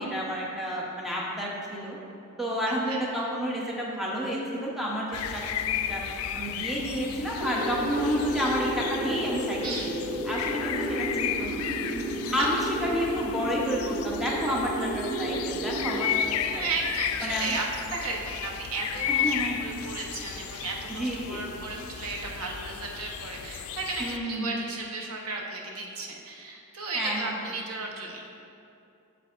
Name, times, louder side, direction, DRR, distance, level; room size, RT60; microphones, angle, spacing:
voice 1, 0.0-2.0 2.4-6.0 6.3-9.7 10.2-11.6 12.3-16.6 17.2-17.6 19.1-19.6 20.9-21.4 24.0-24.5 27.0-27.3, equal, ahead, -5 dB, 0.8 m, -30 dB
voice 2, 2.7-3.0 9.6-9.9 12.3-12.5 16.5-17.6 17.9-19.3 19.6-28.2, right 3 dB, 85° right, 0 dB, 0.9 m, -34 dB
sound 1, 5.1-24.2, left 9 dB, 80° left, 0.3 m, -34 dB
sound 2, 7.4-16.1, right 1 dB, 55° right, 1.4 m, -32 dB
8.0 x 7.0 x 2.5 m, 2.6 s
head